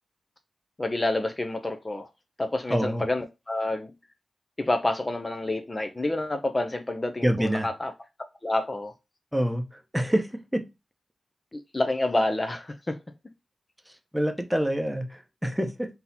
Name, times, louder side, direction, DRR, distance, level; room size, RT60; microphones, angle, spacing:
voice 1, 0.8-2.1 2.4-3.9 4.6-7.9 8.4-8.9 11.5-13.0, left 2 dB, 30° left, 0.6 m, -28 dB
voice 2, 2.7-3.0 7.2-7.7 9.3-9.6 9.9-10.6 14.1-15.9, equal, 5° right, 0.9 m, -26 dB
3.8 x 2.9 x 4.1 m
cardioid pair, 55°, 0 cm